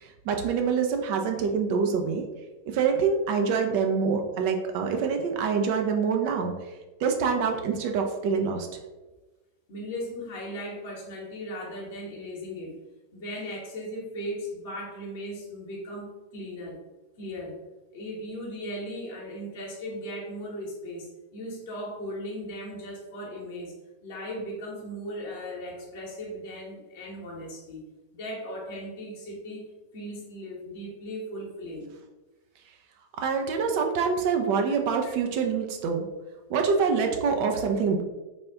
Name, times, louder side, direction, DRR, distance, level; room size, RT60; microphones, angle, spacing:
voice 1, 0.0-2.2 2.7-6.5 7.0-8.7 33.2-36.0 36.5-38.0, right 5 dB, 45° right, 4 dB, 0.4 m, -25 dB
voice 2, 9.7-12.8 13.1-16.8 17.2-17.6 17.9-23.8 24.0-27.8 28.1-29.7 29.9-31.9 35.0-35.1, equal, 55° left, -2 dB, 0.9 m, -37 dB
3.4 x 2.4 x 3.5 m, 1.1 s
figure-of-eight pair, 90°, 0 cm